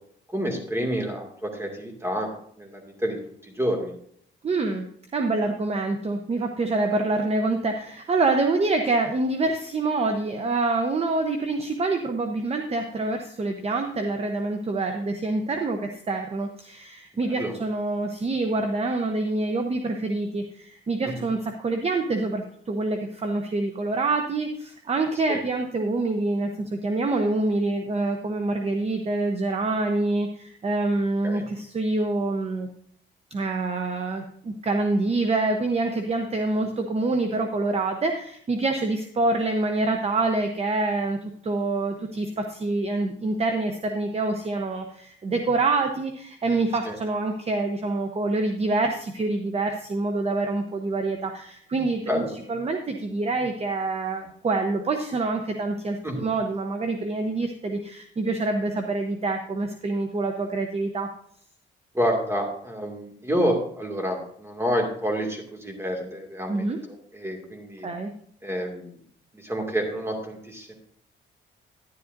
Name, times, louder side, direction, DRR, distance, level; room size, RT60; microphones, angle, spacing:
voice 1, 0.3-2.3 2.6-4.0 17.4-17.5 21.0-21.3 25.3-25.4 31.2-31.4 46.9-47.0 52.1-52.4 56.0-56.3 61.9-67.9 68.4-69.0 69.3-70.7, equal, 15° right, 2 dB, 2.2 m, -29 dB
voice 2, 4.4-4.9 5.1-32.7 33.3-52.2 52.5-61.1 66.5-66.8 67.8-68.1, right 2 dB, 30° right, 5 dB, 0.9 m, -26 dB
11.0 x 10.5 x 2.6 m, 0.63 s
cardioid pair, 90°, 20 cm